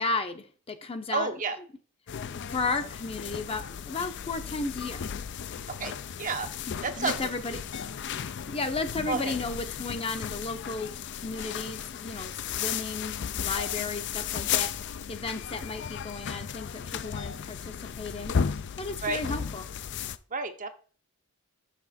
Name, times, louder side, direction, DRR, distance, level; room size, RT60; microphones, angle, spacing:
voice 1, 0.0-1.3 2.3-5.0 7.0-7.6 8.5-10.9 11.2-14.7 15.1-18.3 18.8-19.7, left 3 dB, 25° left, 7 dB, 0.7 m, -34 dB
voice 2, 1.1-1.6 5.8-5.9 6.2-6.5 6.8-7.2 7.5-7.6 9.1-9.3 19.0-19.2 20.3-20.7, right 4 dB, 35° right, 8 dB, 0.7 m, -30 dB
sound 1, 2.1-20.2, left 7 dB, 55° left, 0.4 m, -35 dB
6.1 x 5.9 x 4.2 m, 0.40 s
head